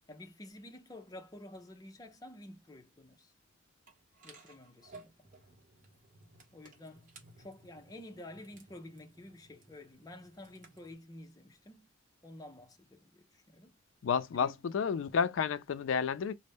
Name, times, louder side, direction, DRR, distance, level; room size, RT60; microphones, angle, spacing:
voice 1, 0.1-3.3 4.2-5.3 6.5-7.1 7.4-11.9 12.2-13.7 14.3-14.6 15.2-15.3, left 1 dB, 20° left, 0.5 m, -50 dB
sound 1, 3.9-10.9, right 3 dB, 40° right, 0.9 m, -58 dB
voice 2, 14.0-16.3, left 6 dB, 70° left, 0.4 m, -31 dB
3.9 x 2.1 x 3.5 m
head